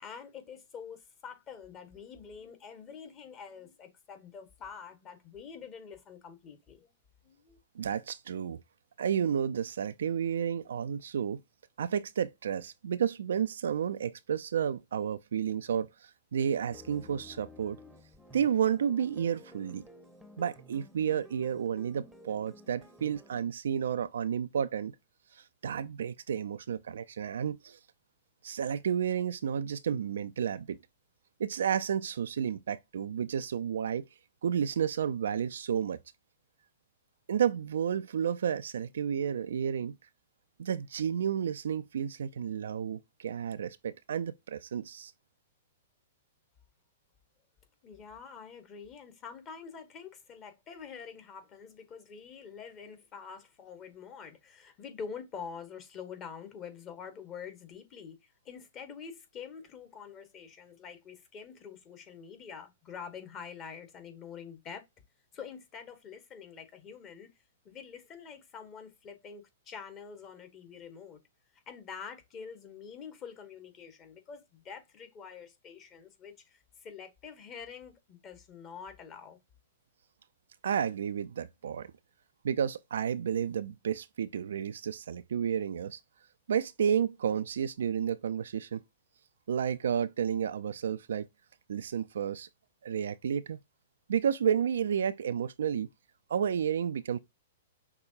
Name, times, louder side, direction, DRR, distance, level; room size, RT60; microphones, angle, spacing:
voice 1, 0.0-6.9 7.2-7.6 47.8-64.8 65.3-67.3 67.6-71.2 71.7-79.4, left 6 dB, 30° left, 1.3 m, -46 dB
voice 2, 7.8-8.6 9.0-11.4 11.8-17.8 18.3-19.8 20.4-24.9 25.3-27.8 28.4-30.8 31.4-34.1 34.4-36.0 37.3-40.0 40.6-45.1 80.6-81.9 82.4-86.0 86.5-88.8 89.5-91.3 91.7-92.5 92.8-93.6 94.1-95.9 96.3-97.2, right 8 dB, 65° right, 0.4 m, -31 dB
sound 1, 16.7-23.4, equal, ahead, 0.9 m, -53 dB
5.9 x 3.1 x 2.6 m
figure-of-eight pair, 110°, 0 cm